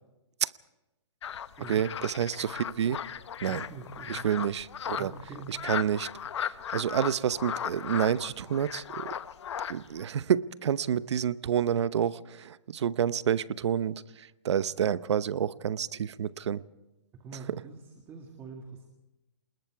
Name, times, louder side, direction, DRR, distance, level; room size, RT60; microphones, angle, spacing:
sound 1, 1.2-10.0, left 9 dB, 70° left, 1.0 m, -37 dB
voice 1, 1.7-3.0 3.4-3.7 4.1-5.1 5.5-6.1 6.4-9.1 9.7-16.6 17.5-17.6, right 9 dB, 70° right, 0.8 m, -29 dB
voice 2, 3.4-4.2 4.9-5.6 17.1-18.9, right 5 dB, 15° right, 1.8 m, -44 dB
28.0 x 20.5 x 4.7 m
hypercardioid pair, 155°, 15 cm